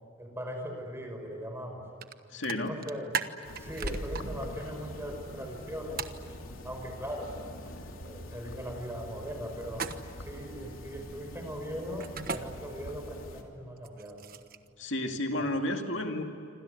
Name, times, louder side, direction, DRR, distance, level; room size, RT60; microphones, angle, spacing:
voice 1, 0.2-1.8 2.4-3.1 3.6-6.0 6.6-7.4 8.0-9.8 10.2-14.2 15.4-15.5, equal, 10° right, 3 dB, 5.7 m, -39 dB
sound 1, 2.0-2.1 2.4-4.2 6.0-6.2 9.7-10.3 12.0-12.4 13.8-14.7, right 5 dB, 45° right, 1.3 m, -36 dB
voice 2, 2.3-2.8 14.8-16.2, left 1 dB, 65° left, 4 dB, 2.4 m, -31 dB
sound 2, 3.4-13.4, left 1 dB, 90° left, 3.3 m, -43 dB
27.5 x 26.0 x 8.3 m, 2.7 s
head